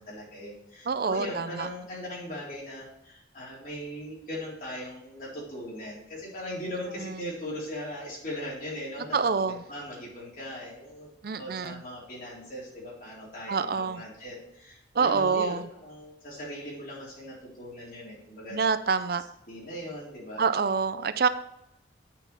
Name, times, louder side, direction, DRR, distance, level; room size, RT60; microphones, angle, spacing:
voice 1, 0.0-18.6 19.2-20.5, left 1 dB, 45° left, -5 dB, 3.7 m, -39 dB
voice 2, 0.9-1.7 7.0-7.2 9.1-9.6 11.2-11.8 13.5-14.0 14.9-15.6 18.5-19.2 20.4-21.3, right 5 dB, 55° right, 12 dB, 0.4 m, -26 dB
8.8 x 4.9 x 5.9 m, 0.82 s
head